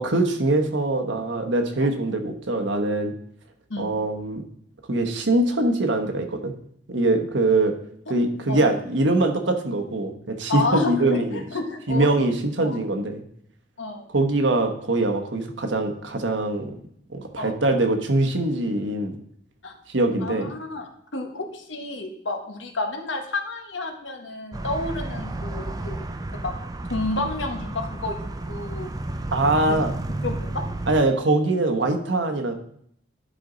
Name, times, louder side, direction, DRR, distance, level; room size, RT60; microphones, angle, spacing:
voice 1, 0.0-3.1 3.8-4.4 4.9-6.5 6.9-7.7 8.1-11.4 11.9-13.2 14.1-16.7 17.1-19.2 19.9-20.5 29.3-29.9 30.9-32.5, right 2 dB, 80° right, 6 dB, 1.2 m, -23 dB
voice 2, 10.5-12.1 12.6-12.8 13.8-14.0 17.4-17.5 19.6-19.7 20.2-26.0 26.3-26.5 26.9-28.2 28.5-28.9 29.7-29.8 30.2-30.6, left 2 dB, 85° left, 4 dB, 1.3 m, -30 dB
sound 1, 24.5-31.0, right 2 dB, 20° right, 0.4 m, -32 dB
11.0 x 5.2 x 3.9 m, 0.67 s
head